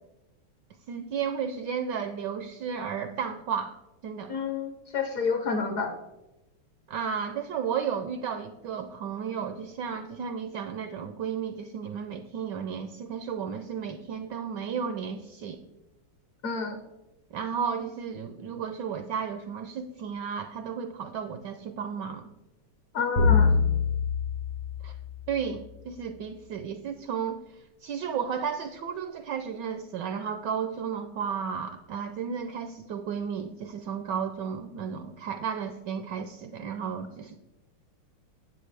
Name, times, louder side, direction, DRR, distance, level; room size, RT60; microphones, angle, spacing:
voice 1, 0.9-3.7 4.0-4.4 6.9-15.6 17.3-22.3 24.8-24.9 25.3-27.4 27.8-37.4, right 7 dB, 75° right, 9 dB, 1.0 m, -33 dB
voice 2, 4.3-5.9 16.4-16.8 22.9-23.5, left 5 dB, 60° left, 6 dB, 0.9 m, -29 dB
sound 1, 23.2-25.6, left 5 dB, 75° left, 2.0 m, -25 dB
9.8 x 7.6 x 3.3 m, 0.99 s
omnidirectional pair, 2.3 m